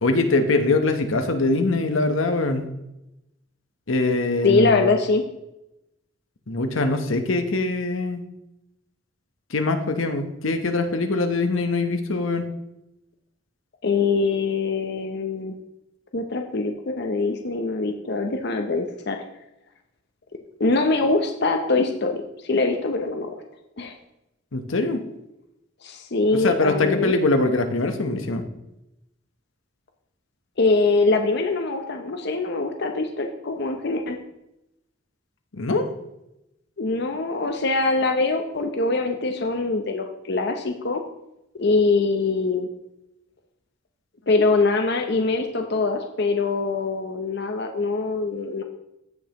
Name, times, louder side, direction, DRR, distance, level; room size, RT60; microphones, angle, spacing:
voice 1, 0.0-2.7 3.9-4.9 6.5-8.2 9.5-12.4 24.5-25.0 26.3-28.4 35.5-35.9, left 2 dB, 85° left, 6 dB, 1.0 m, -23 dB
voice 2, 4.4-5.2 13.8-15.5 16.1-19.2 20.6-23.3 23.8-23.9 25.8-27.2 30.6-34.2 36.8-41.0 41.6-42.7 44.3-48.6, left 3 dB, 55° left, 4 dB, 0.7 m, -23 dB
15.5 x 5.3 x 3.0 m, 0.87 s
head